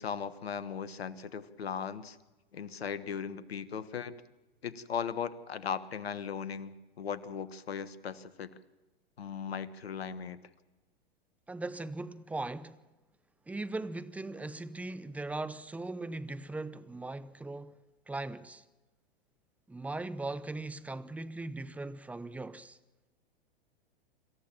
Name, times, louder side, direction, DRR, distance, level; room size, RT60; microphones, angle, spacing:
voice 1, 0.0-2.2 2.5-4.2 4.6-8.5 9.2-10.4, left 7 dB, 80° left, 1.3 m, -38 dB
voice 2, 11.5-12.7 13.5-17.8 18.1-18.6 19.7-22.8, right 2 dB, 5° right, 0.7 m, -39 dB
26.0 x 14.0 x 7.4 m
hypercardioid pair, 105°, 30 cm